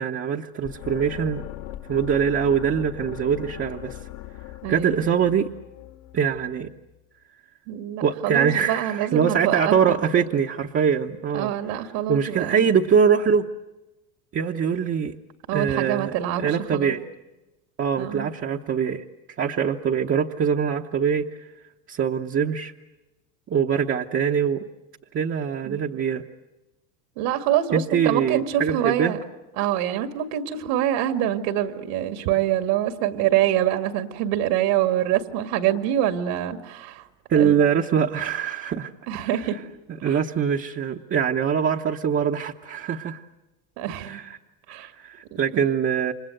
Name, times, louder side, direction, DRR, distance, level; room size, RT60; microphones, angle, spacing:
voice 1, 0.0-1.4 1.9-4.0 4.7-5.5 6.1-6.7 8.0-11.5 12.1-13.4 14.3-15.1 15.5-17.0 17.8-19.0 19.4-21.3 21.9-22.7 23.5-24.6 25.1-26.2 27.7-29.2 37.3-38.9 39.2-39.3 40.0-43.2 43.9-44.4 44.8-46.1, right 7 dB, 30° right, 2 dB, 1.0 m, -23 dB
sound 1, 0.6-6.7, left 15 dB, 60° left, 2.1 m, -39 dB
voice 2, 4.6-5.0 7.7-10.0 11.3-12.7 15.5-16.9 18.0-18.3 25.7-25.8 27.2-29.2 29.6-37.0 37.4-37.7 39.1-39.6 40.1-40.2 43.8-44.2 44.7-44.9, right 11 dB, 70° right, 7 dB, 2.3 m, -25 dB
29.5 x 25.5 x 7.9 m, 1.0 s
cardioid pair, 140°, 43 cm